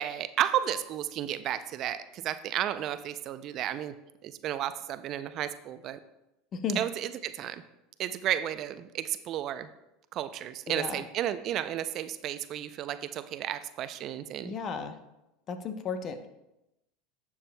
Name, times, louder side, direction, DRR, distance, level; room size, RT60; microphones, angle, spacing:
voice 1, 0.0-3.9 4.2-6.0 6.8-7.6 8.0-9.7 10.1-14.6, right 11 dB, 50° right, 12 dB, 0.4 m, -33 dB
voice 2, 10.7-11.0 14.4-15.0 15.5-16.3, left 5 dB, 45° left, 9 dB, 0.8 m, -34 dB
11.5 x 7.2 x 2.2 m, 0.91 s
hypercardioid pair, 90°, 0 cm